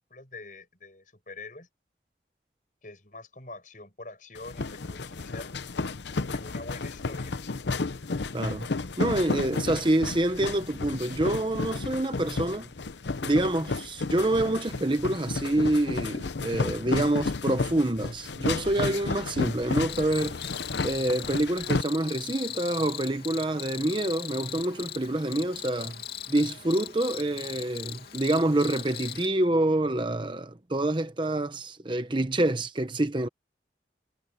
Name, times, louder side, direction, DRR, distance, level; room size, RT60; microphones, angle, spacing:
voice 1, 0.0-1.7 2.8-5.7 6.3-7.4, left 3 dB, 45° left, 7.4 m, -45 dB
sound 1, 4.4-21.8, left 3 dB, 85° left, 0.8 m, -32 dB
voice 2, 8.3-8.7 9.0-12.7 13.2-20.4 20.8-26.0 26.3-33.3, right 1 dB, 25° right, 0.8 m, -27 dB
Cricket, 19.9-29.3, left 11 dB, 65° left, 2.6 m, -39 dB
head